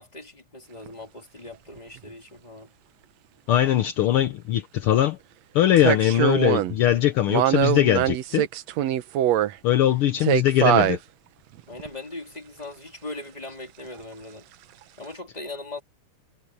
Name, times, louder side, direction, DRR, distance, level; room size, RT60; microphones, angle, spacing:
voice 1, 0.0-2.7 11.7-14.5 15.0-15.8, left 2 dB, 15° left, 3.2 m, -39 dB
sound 1, 0.9-1.0 5.8-6.8 7.3-9.5 10.2-11.0 11.8-11.9, right 12 dB, 70° right, 2.0 m, -22 dB
voice 2, 3.5-5.2 5.5-8.4 9.6-11.0, left 12 dB, 70° left, 1.3 m, -21 dB
omnidirectional pair, 3.4 m